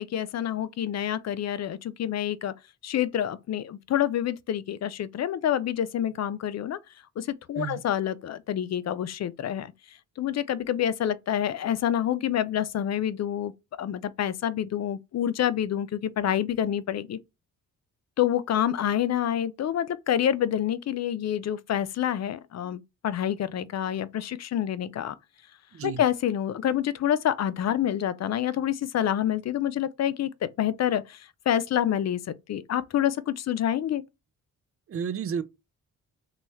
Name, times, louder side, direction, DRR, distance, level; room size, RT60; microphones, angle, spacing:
voice 1, 0.0-2.5 2.8-6.8 7.2-9.7 10.2-13.5 13.8-17.2 18.2-25.1 25.8-31.2 31.5-34.0, left 10 dB, 45° left, 0.5 m, -27 dB
voice 2, 34.9-35.4, right 7 dB, 40° right, 0.5 m, -31 dB
3.0 x 2.3 x 4.3 m
cardioid pair, 65°, 36 cm